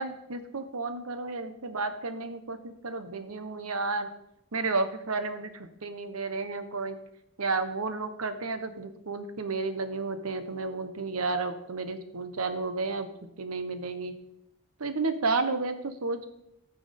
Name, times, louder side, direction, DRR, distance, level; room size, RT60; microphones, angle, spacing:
voice 1, 0.0-4.1 4.5-7.0 7.4-13.1 13.4-14.1 14.8-16.3, right 3 dB, 90° right, 10 dB, 1.1 m, -32 dB
15.0 x 6.1 x 5.3 m, 0.83 s
head